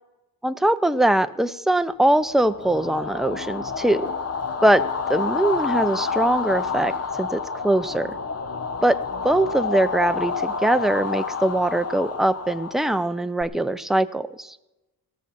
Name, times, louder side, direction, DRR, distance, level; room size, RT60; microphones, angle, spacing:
voice 1, 0.4-4.1 4.6-4.8 5.1-8.1 8.8-9.0 9.2-14.6, right 1 dB, ahead, 11 dB, 0.5 m, -22 dB
sound 1, 2.3-13.4, left 5 dB, 40° left, 0.8 m, -29 dB
16.5 x 7.1 x 7.5 m, 1.0 s
wide cardioid pair, 105°, 39 cm